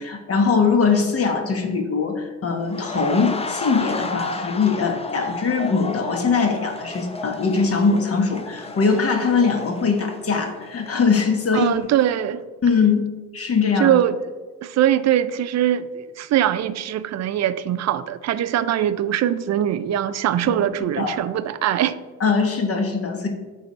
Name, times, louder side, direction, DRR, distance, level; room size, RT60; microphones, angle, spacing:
voice 1, 0.0-11.7 12.6-13.9 20.5-20.6 21.0-21.2 22.2-23.3, left 5 dB, 50° left, 4 dB, 1.2 m, -21 dB
sound 1, 2.7-11.5 11.8-12.0, left 3 dB, 20° left, 0.6 m, -33 dB
voice 2, 11.5-12.4 13.8-14.2 14.6-22.0, right 11 dB, 60° right, 14 dB, 0.5 m, -22 dB
8.6 x 3.5 x 5.3 m, 1.3 s
cardioid pair, 90°, 30 cm